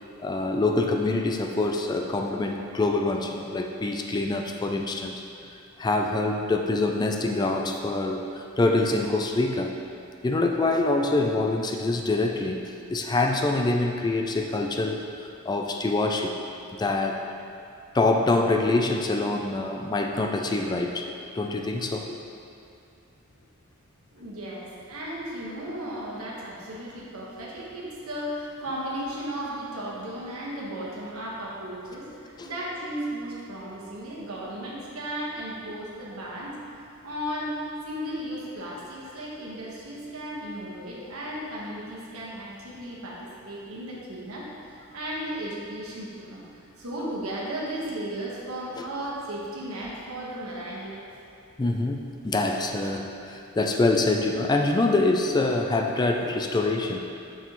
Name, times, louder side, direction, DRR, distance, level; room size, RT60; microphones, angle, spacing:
voice 1, 0.2-5.1 5.8-9.7 10.2-12.6 12.9-16.4 16.7-17.3 17.9-21.1 21.3-22.2 32.4-32.5 48.8-48.9 51.6-57.0, left 2 dB, 20° left, 3 dB, 0.3 m, -25 dB
voice 2, 24.1-36.5 37.0-37.6 37.8-46.4 46.8-51.0, right 1 dB, 85° right, -5 dB, 1.4 m, -35 dB
6.7 x 6.3 x 3.0 m, 2.6 s
head